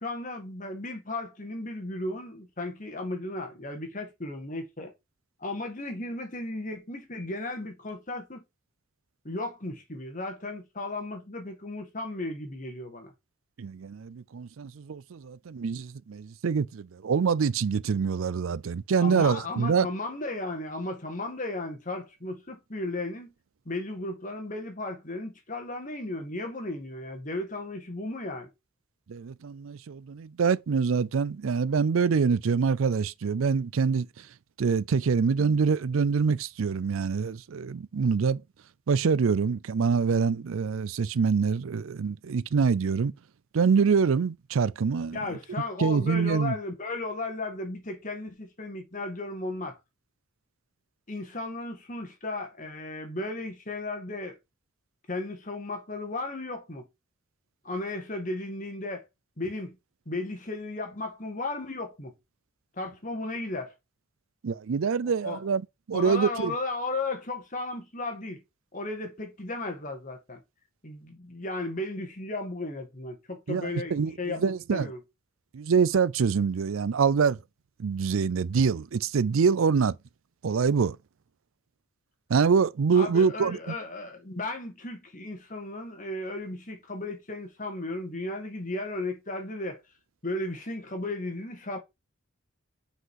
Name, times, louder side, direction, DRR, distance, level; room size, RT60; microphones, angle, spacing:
voice 1, 0.0-4.9 5.4-8.4 9.2-13.1 19.0-23.3 23.7-28.5 45.1-49.8 51.1-54.4 55.1-56.8 57.6-59.1 59.4-59.8 60.1-62.1 62.8-63.8 65.0-65.4 65.9-68.4 68.7-70.4 70.8-75.0 82.9-89.8 90.2-91.8, left 2 dB, 35° left, 1.9 m, -35 dB
voice 2, 13.6-19.9 29.1-34.1 34.6-38.4 38.9-43.1 43.5-45.2 45.8-46.6 64.4-65.6 65.9-66.5 73.5-74.9 75.5-77.4 77.8-80.0 80.4-81.0 82.3-83.7, right 5 dB, 75° right, 0.4 m, -25 dB
6.2 x 5.0 x 4.6 m
head